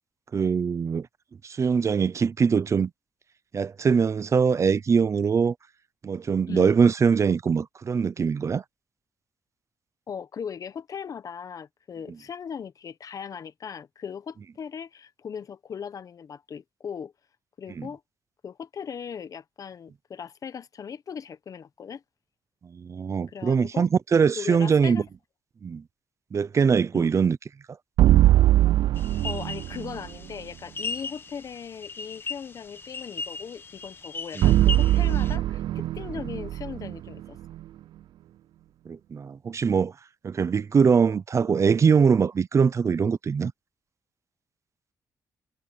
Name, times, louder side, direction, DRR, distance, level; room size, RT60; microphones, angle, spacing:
voice 1, 0.3-1.1 1.4-2.9 3.5-5.5 6.0-8.6 17.8-17.9 22.6-25.0 25.6-25.8 26.3-27.4 34.4-34.5 38.9-39.9 40.2-43.5, right 6 dB, 40° right, 0.7 m, -22 dB
voice 2, 10.1-17.1 17.6-18.0 18.4-22.0 23.3-23.9 24.4-25.0 26.9-27.1 29.2-37.4 41.4-41.5, left 7 dB, 50° left, 0.9 m, -38 dB
sound 1, 28.0-30.2 34.4-37.6, right 14 dB, 80° right, 0.4 m, -21 dB
sound 2, 29.0-35.4, left 4 dB, 30° left, 1.5 m, -38 dB
cardioid pair, 105°, 8 cm